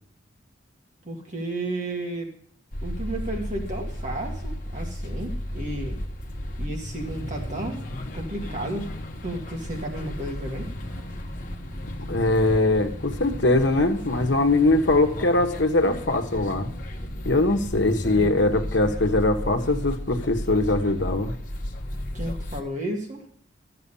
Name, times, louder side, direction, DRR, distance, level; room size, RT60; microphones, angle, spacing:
voice 1, 1.0-2.3 2.8-6.0 6.6-7.9 8.1-8.9 9.2-10.7 22.1-23.2, right 1 dB, 40° right, 1 dB, 2.1 m, -32 dB
sound 1, 2.7-22.6, equal, 45° left, 1.2 m, -34 dB
voice 2, 12.1-16.7 17.2-21.4, left 2 dB, 65° left, 5 dB, 1.2 m, -22 dB
13.0 x 7.9 x 5.4 m, 0.64 s
head